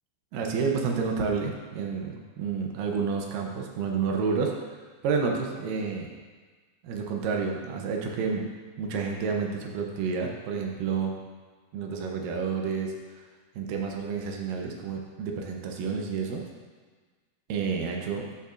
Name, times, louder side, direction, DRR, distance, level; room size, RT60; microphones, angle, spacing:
voice 1, 0.3-4.5 5.0-6.1 6.8-8.4 8.8-11.1 11.7-13.2 13.6-16.4 17.5-18.3, right 5 dB, 80° right, 1 dB, 2.0 m, -30 dB
12.5 x 5.6 x 2.5 m, 1.5 s
omnidirectional pair, 4.7 m